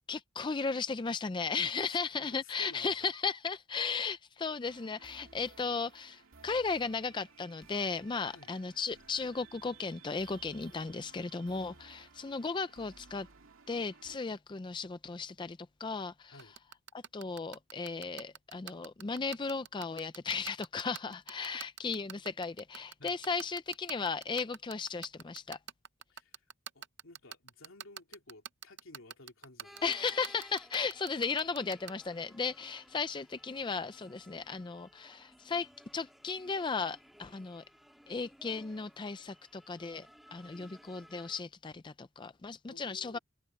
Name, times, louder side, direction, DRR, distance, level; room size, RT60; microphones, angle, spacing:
voice 1, 0.1-13.3 13.7-16.3 17.1-25.6 29.8-37.6 38.1-43.2, left 4 dB, 20° left, 0.4 m, -36 dB
voice 2, 1.8-3.1 8.3-8.5 16.3-16.5 21.5-21.9 23.0-23.2 26.1-26.5 26.7-29.8 42.7-43.2, left 2 dB, 75° left, 3.0 m, -55 dB
sound 1, 4.6-14.2, right 4 dB, 80° right, 2.2 m, -58 dB
sound 2, 16.4-31.9, right 9 dB, 55° right, 0.6 m, -44 dB
sound 3, 29.6-41.4, equal, ahead, 3.3 m, -58 dB
head